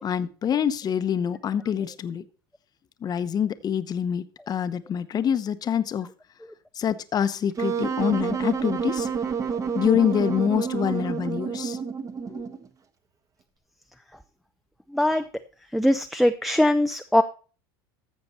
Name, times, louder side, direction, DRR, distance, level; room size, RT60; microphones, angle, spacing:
voice 1, 0.0-2.2 3.0-6.1 6.7-9.1 9.7-11.8 12.3-12.4, left 8 dB, 35° left, 1.0 m, -26 dB
Wind instrument woodwind instrument, 7.6-12.7, right 6 dB, 30° right, 1.3 m, -29 dB
voice 2, 14.9-15.2 15.7-17.2, left 1 dB, ahead, 0.6 m, -21 dB
14.0 x 6.9 x 4.3 m
supercardioid pair, 105°, 12 cm